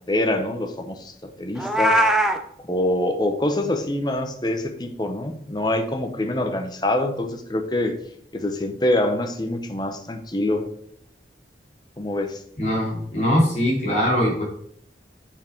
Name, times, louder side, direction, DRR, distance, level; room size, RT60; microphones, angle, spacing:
voice 1, 0.1-2.0 2.6-8.0 8.3-10.7 12.0-12.4, left 1 dB, 25° left, 6 dB, 0.8 m, -25 dB
Meow, 1.6-2.4, right 1 dB, 5° right, 0.5 m, -19 dB
voice 2, 12.6-14.4, equal, 40° left, -3 dB, 3.0 m, -21 dB
7.3 x 5.6 x 4.5 m, 0.67 s
head